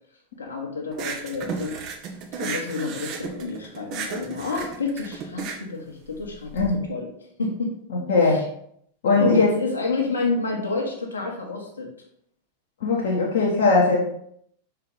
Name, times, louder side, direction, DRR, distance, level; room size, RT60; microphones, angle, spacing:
voice 1, 0.4-1.8 2.4-6.6 6.9-7.1 7.4-7.7 8.2-8.4 9.2-11.9, left 3 dB, 75° left, 0 dB, 1.4 m, -28 dB
sound 1, 0.9-6.7, right 5 dB, 40° right, 0.9 m, -34 dB
voice 2, 7.9-8.5 9.0-9.5 12.8-14.0, left 3 dB, 55° left, -3 dB, 1.2 m, -20 dB
5.7 x 4.7 x 3.9 m, 0.68 s
figure-of-eight pair, 90°, 0 cm